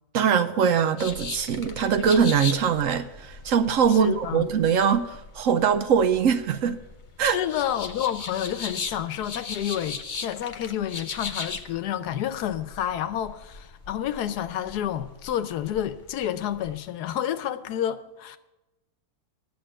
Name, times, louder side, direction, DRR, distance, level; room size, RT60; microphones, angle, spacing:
voice 1, 0.1-6.8 7.2-7.4, right 7 dB, 65° right, 0.9 m, -22 dB
sound 1, 1.0-16.8, left 4 dB, 40° left, 0.7 m, -39 dB
voice 2, 3.9-4.5 7.2-18.4, left 10 dB, 85° left, 1.2 m, -29 dB
10.5 x 7.3 x 8.7 m
omnidirectional pair, 1.7 m